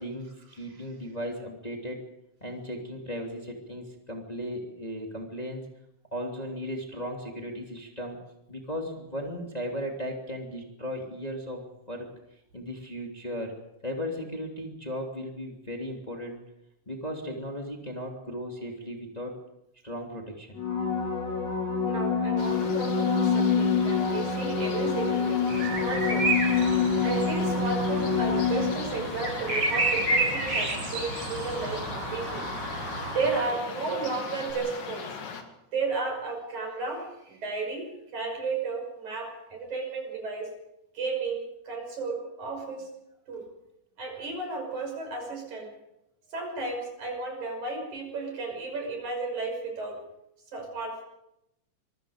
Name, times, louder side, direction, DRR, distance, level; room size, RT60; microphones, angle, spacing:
voice 1, 0.0-2.0 2.4-5.7 6.1-8.2 8.5-12.1 12.5-13.5 13.8-16.4 16.9-19.4 19.8-20.6, equal, 15° left, 0 dB, 2.8 m, -36 dB
sound 1, 20.5-29.2 34.5-34.6, left 5 dB, 40° left, 6.0 m, -26 dB
voice 2, 21.9-25.5 25.8-26.4 27.0-32.5 33.1-35.2 35.7-37.9 38.1-40.5 40.9-42.9 43.3-43.4 44.0-45.7 46.3-50.0 50.5-51.0, right 3 dB, 70° right, 3 dB, 7.3 m, -33 dB
sound 2, 22.4-35.4, left 5 dB, 70° left, 3.7 m, -40 dB
sound 3, 25.5-33.4, right 2 dB, 40° right, 6.7 m, -31 dB
26.0 x 23.5 x 5.1 m, 0.84 s
omnidirectional pair, 3.5 m